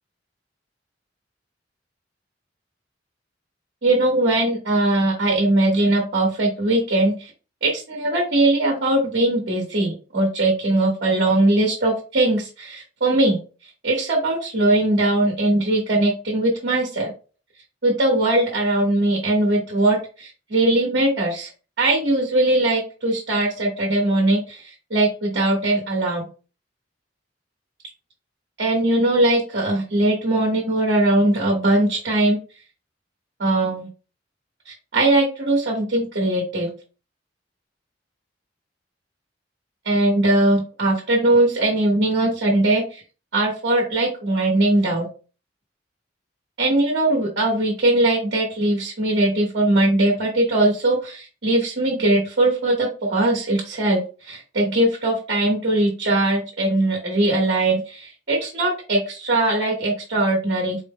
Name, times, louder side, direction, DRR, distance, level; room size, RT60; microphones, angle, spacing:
voice 1, 3.8-7.3 7.6-13.4 13.8-17.1 17.8-21.5 21.8-26.3 28.6-32.4 33.4-33.9 34.7-36.7 39.8-43.0 43.3-45.1 46.6-60.8, right 2 dB, 60° right, -1 dB, 1.1 m, -20 dB
4.3 x 2.0 x 3.6 m, 0.35 s
head